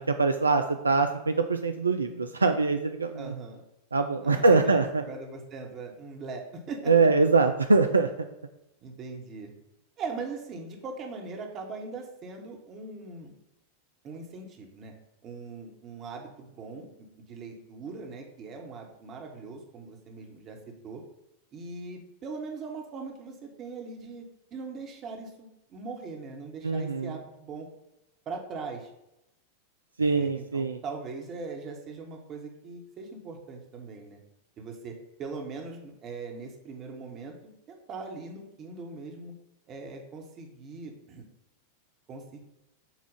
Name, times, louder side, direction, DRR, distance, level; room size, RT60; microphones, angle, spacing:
voice 1, 0.0-3.3 3.9-5.0 6.9-8.1 26.6-27.1 30.0-30.8, right 3 dB, 75° right, 6 dB, 0.3 m, -23 dB
voice 2, 3.1-3.6 4.2-7.1 8.8-9.5 10.0-13.3 14.0-14.9 15.2-20.6 20.8-21.0 21.5-24.2 24.5-27.7 28.2-28.9 30.0-34.2 34.6-39.3 39.7-41.2 42.1-42.4, right 4 dB, 30° right, 2 dB, 1.1 m, -40 dB
7.2 x 2.4 x 5.4 m, 0.88 s
figure-of-eight pair, 90°, 0 cm